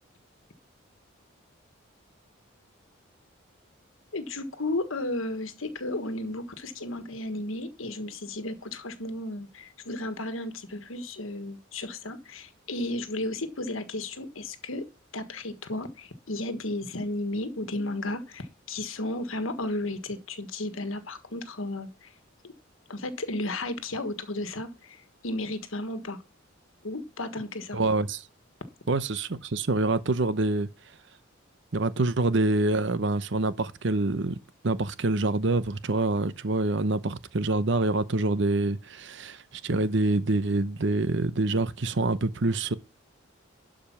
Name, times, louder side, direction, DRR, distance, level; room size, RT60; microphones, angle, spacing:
voice 1, 4.1-14.8 15.1-22.1 22.9-26.2 26.8-27.8, left 2 dB, 80° left, 1.5 m, -34 dB
voice 2, 27.7-28.2 28.9-30.7 31.7-34.4 34.6-42.7, right 2 dB, 60° right, 0.7 m, -26 dB
12.0 x 5.1 x 5.8 m
head